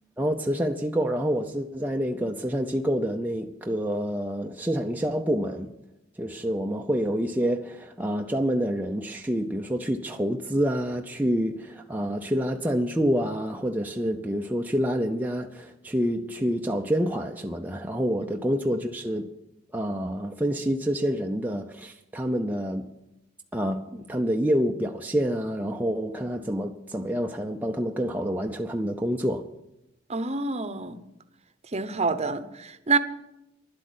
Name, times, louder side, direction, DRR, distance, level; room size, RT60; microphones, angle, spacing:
voice 1, 0.2-5.7 6.2-19.3 19.7-22.9 23.5-29.4, equal, 10° right, 0.6 m, -27 dB
voice 2, 30.1-31.0 31.7-33.0, right 4 dB, 35° right, 0.8 m, -27 dB
11.5 x 8.0 x 9.4 m
head